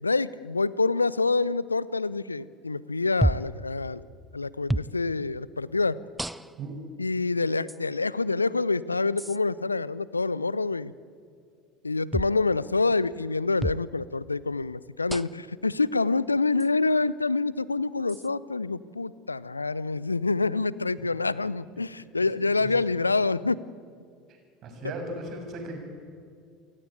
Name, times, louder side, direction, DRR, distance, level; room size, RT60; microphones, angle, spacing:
voice 1, 0.0-4.0 4.3-6.0 7.0-10.9 11.8-23.6, left 3 dB, 85° left, 20 dB, 0.6 m, -26 dB
sound 1, 3.2-3.6 4.7-4.9 6.2-6.7 7.7-7.8 9.2-9.4 12.1-12.4 13.6-13.9 15.1-15.5 16.6-16.7 18.1-18.3, right 1 dB, 5° right, 0.6 m, -29 dB
voice 2, 22.2-22.7 24.6-25.8, right 2 dB, 45° right, 3 dB, 7.1 m, -37 dB
28.0 x 16.5 x 9.0 m, 2.3 s
figure-of-eight pair, 70°, 0 cm